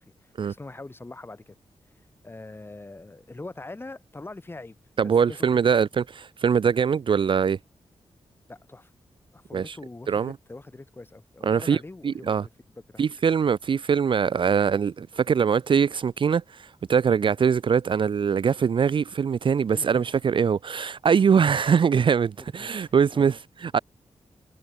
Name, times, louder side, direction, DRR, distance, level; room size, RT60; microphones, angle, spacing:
voice 1, 0.0-1.6 2.2-4.8 5.0-5.6 8.5-8.9 9.3-12.4 12.9-13.0 19.7-20.1 22.4-23.3, left 2 dB, 20° left, 7.0 m, -43 dB
voice 2, 5.0-7.6 9.5-9.8 10.1-10.3 11.4-11.8 12.0-12.4 13.0-23.8, right 6 dB, 50° right, 0.5 m, -22 dB
wide cardioid pair, 155°, 11 cm